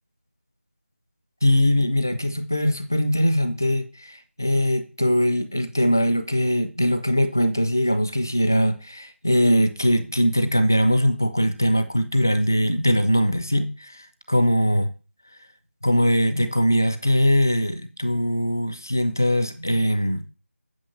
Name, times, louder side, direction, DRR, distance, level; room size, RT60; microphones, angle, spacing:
voice 1, 1.4-14.9 15.8-20.2, equal, 15° left, 11 dB, 0.5 m, -21 dB
9.0 x 5.7 x 7.1 m, 0.34 s
figure-of-eight pair, 180°, 7 cm